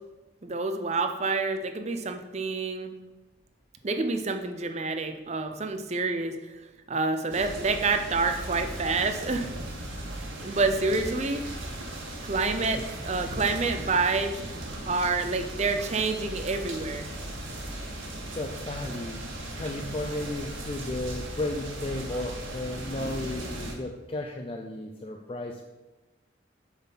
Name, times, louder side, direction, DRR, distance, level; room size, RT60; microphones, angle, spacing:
voice 1, 0.4-2.9 3.8-6.6 6.9-9.5 10.4-11.4 12.2-14.3 14.8-17.1, right 3 dB, 35° right, 6 dB, 0.6 m, -28 dB
sound 1, 7.3-23.7, right 1 dB, 85° right, 1.5 m, -37 dB
voice 2, 18.3-19.2 19.6-25.6, left 1 dB, 25° left, 3 dB, 0.4 m, -34 dB
7.0 x 4.1 x 5.7 m, 1.1 s
head